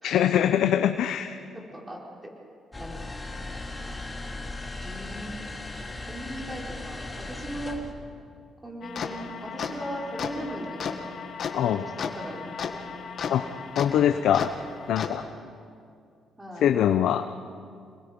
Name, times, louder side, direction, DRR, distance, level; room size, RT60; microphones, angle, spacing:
voice 1, 0.0-1.4 11.5-11.8 13.3-13.5 13.7-14.5 14.9-15.2 16.6-17.2, left 10 dB, 80° left, 8 dB, 0.7 m, -23 dB
voice 2, 1.5-2.3 2.8-3.3 4.8-5.4 6.1-7.8 8.6-10.9 11.6-12.8 16.4-16.7, equal, 15° right, -2 dB, 4.8 m, -38 dB
sound 1, 2.7-7.9, left 2 dB, 15° left, 2.5 m, -37 dB
sound 2, 8.8-15.1, left 6 dB, 60° left, 1.8 m, -35 dB
27.5 x 21.0 x 5.3 m, 2.4 s
cardioid pair, 90°, 0 cm